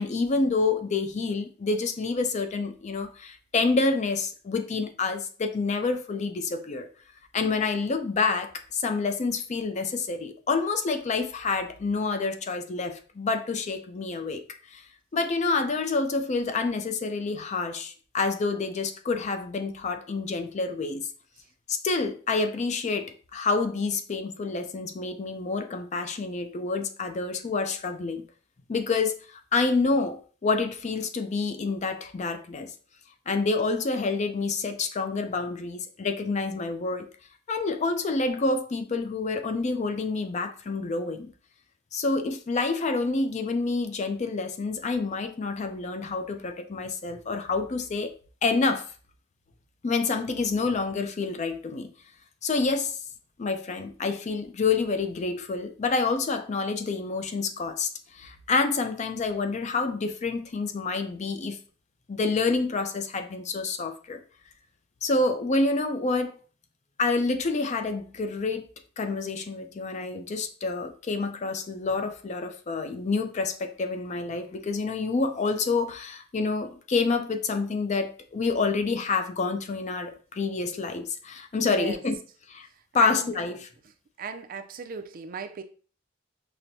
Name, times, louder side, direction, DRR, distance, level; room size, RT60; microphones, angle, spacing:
voice 1, 0.0-6.9 7.3-14.8 15.1-21.1 21.7-28.2 28.7-32.7 33.3-37.1 37.5-41.3 41.9-48.1 48.4-48.8 49.8-51.9 52.4-53.0 53.4-61.6 62.1-64.2 65.0-66.3 67.0-68.7 69.0-82.2 82.5-82.7 82.9-83.7, left 3 dB, 35° left, 7 dB, 0.4 m, -28 dB
voice 2, 81.6-82.0 83.0-83.3 84.2-85.6, right 5 dB, 45° right, 8 dB, 0.4 m, -36 dB
5.8 x 2.0 x 2.7 m, 0.40 s
head